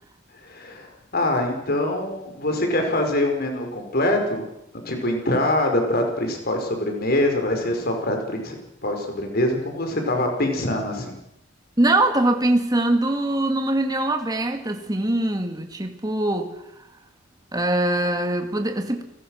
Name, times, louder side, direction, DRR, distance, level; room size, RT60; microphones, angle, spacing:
voice 1, 0.4-4.5 4.9-8.6 8.8-11.2, left 1 dB, 50° left, 5.2 m, -24 dB
voice 2, 11.8-16.5 17.5-19.0, right 1 dB, 20° right, 2.2 m, -22 dB
29.5 x 20.0 x 6.5 m
head